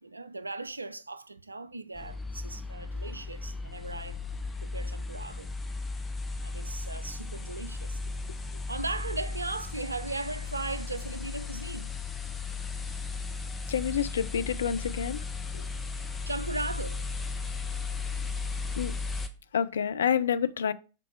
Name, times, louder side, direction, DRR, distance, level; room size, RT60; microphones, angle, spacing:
voice 1, 0.0-4.2 4.6-5.5 6.4-8.0 8.7-11.9 16.3-17.1, right 2 dB, 80° right, 0.4 m, -37 dB
sound 1, 2.0-19.3, left 4 dB, 10° left, 0.9 m, -36 dB
voice 2, 13.7-15.2 15.5-15.7 18.8-18.9 19.5-20.7, left 8 dB, 65° left, 0.4 m, -28 dB
7.5 x 4.1 x 4.5 m
figure-of-eight pair, 90°, 0 cm